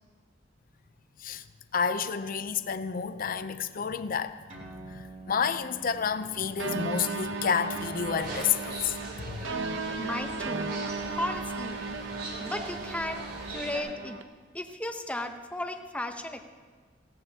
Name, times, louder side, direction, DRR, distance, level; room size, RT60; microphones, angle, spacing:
voice 1, 1.7-4.4 4.8-9.4, left 6 dB, 50° left, 0.5 m, -30 dB
sound 1, 4.5-11.4, right 2 dB, 40° right, 3.1 m, -51 dB
sound 2, 6.6-14.2, right 3 dB, 85° right, 0.8 m, -35 dB
sound 3, 8.1-13.8, right 2 dB, 55° right, 3.1 m, -41 dB
voice 2, 10.0-10.7 11.1-11.8 12.4-14.2 14.5-16.4, left 1 dB, 5° left, 0.8 m, -35 dB
19.0 x 16.0 x 2.8 m
head